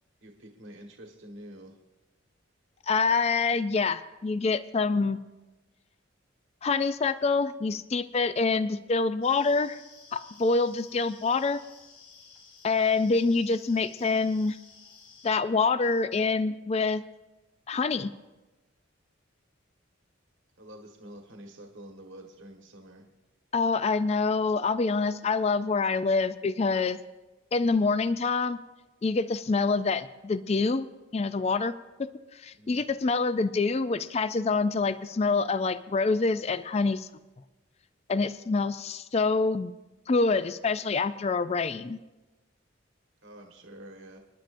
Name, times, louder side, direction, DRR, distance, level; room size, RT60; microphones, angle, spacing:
voice 1, 0.2-1.8 20.6-23.1 32.6-32.8 43.2-44.2, right 1 dB, 70° right, 2 dB, 1.4 m, -47 dB
voice 2, 2.9-5.2 6.6-9.8 10.1-11.6 12.6-14.6 15.2-17.0 17.7-18.1 23.5-27.0 27.5-28.6 29.0-30.9 31.1-31.7 32.0-32.1 32.3-37.1 38.1-39.7 40.1-42.0, left 4 dB, 30° left, 13 dB, 0.4 m, -26 dB
sound 1, 9.2-15.3, left 5 dB, 75° left, 2.6 m, -53 dB
28.5 x 10.5 x 2.6 m, 1.1 s
head